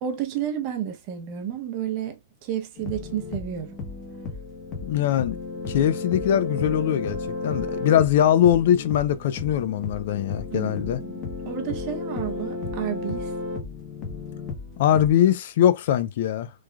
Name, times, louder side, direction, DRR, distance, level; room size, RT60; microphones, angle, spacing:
voice 1, 0.0-3.7 10.5-13.3, right 10 dB, 35° right, 0.7 m, -31 dB
sound 1, 2.8-15.1, left 3 dB, 30° left, 0.8 m, -33 dB
voice 2, 4.8-5.4 5.7-11.0 14.8-16.5, left 10 dB, 60° left, 0.3 m, -21 dB
3.1 x 2.3 x 2.2 m
supercardioid pair, 160°, 0 cm